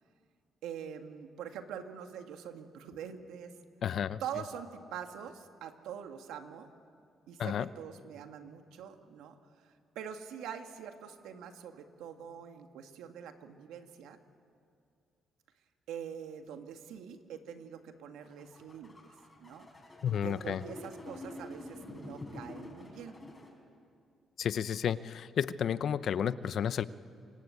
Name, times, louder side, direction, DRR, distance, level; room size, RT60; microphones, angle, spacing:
voice 1, 0.6-3.5 4.2-6.7 7.3-14.2 15.9-19.0 19.4-19.7 20.1-23.2, right 8 dB, 90° right, 6 dB, 1.9 m, -44 dB
voice 2, 3.8-4.2 7.4-7.7 20.0-20.6 24.4-26.8, left 8 dB, 65° left, 15 dB, 0.8 m, -31 dB
sound 1, 18.2-23.5, left 2 dB, 25° left, 6.6 m, -47 dB
27.5 x 25.0 x 8.5 m, 2.3 s
cardioid pair, 90°, 0 cm